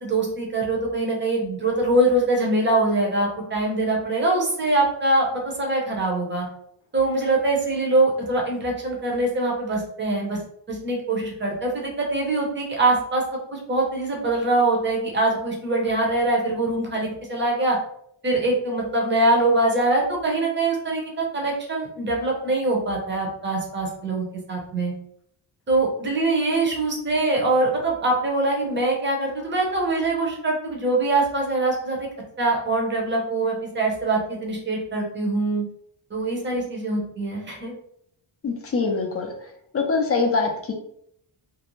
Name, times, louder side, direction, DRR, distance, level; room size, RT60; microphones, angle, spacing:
voice 1, 0.0-6.5 6.9-10.4 10.7-13.2 13.5-17.8 18.2-24.9 25.7-32.0 32.4-35.6 36.1-37.7, right 2 dB, 25° right, -1 dB, 0.7 m, -23 dB
voice 2, 38.4-39.3 39.7-40.7, left 4 dB, 30° left, 2 dB, 0.4 m, -23 dB
2.6 x 2.0 x 2.9 m, 0.70 s
wide cardioid pair, 145°, 49 cm